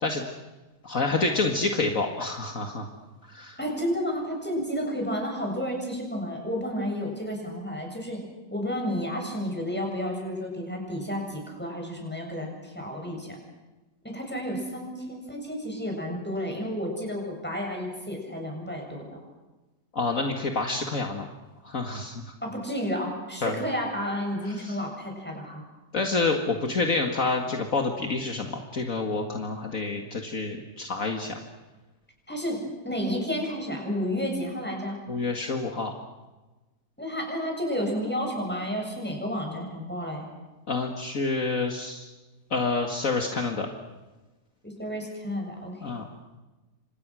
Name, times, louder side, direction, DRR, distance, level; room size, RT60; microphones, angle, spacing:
voice 1, 0.8-2.9 3.3-3.6 19.9-21.2 21.6-22.2 23.4-23.6 24.4-24.8 25.9-31.4 35.1-35.9 40.7-42.1 42.5-43.7 45.8-46.1, left 3 dB, 55° left, 3 dB, 2.3 m, -28 dB
voice 2, 3.6-8.2 8.5-13.4 14.0-19.1 22.4-25.6 32.3-35.0 37.0-40.3 44.6-45.9, equal, 5° left, 1 dB, 7.4 m, -31 dB
29.5 x 26.5 x 6.3 m, 1.1 s
omnidirectional pair, 1.7 m